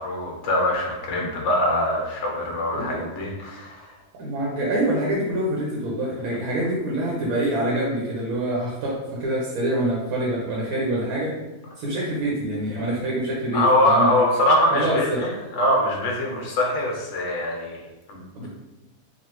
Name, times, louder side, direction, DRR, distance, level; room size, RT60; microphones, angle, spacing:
voice 1, 0.0-3.9 13.5-17.8 18.1-18.5, left 1 dB, 60° left, -1 dB, 1.0 m, -23 dB
voice 2, 2.7-3.1 4.2-11.3 11.8-14.2 14.7-15.2 18.3-18.5, right 1 dB, 90° right, -4 dB, 1.1 m, -25 dB
3.0 x 2.4 x 2.9 m, 1.1 s
omnidirectional pair, 1.5 m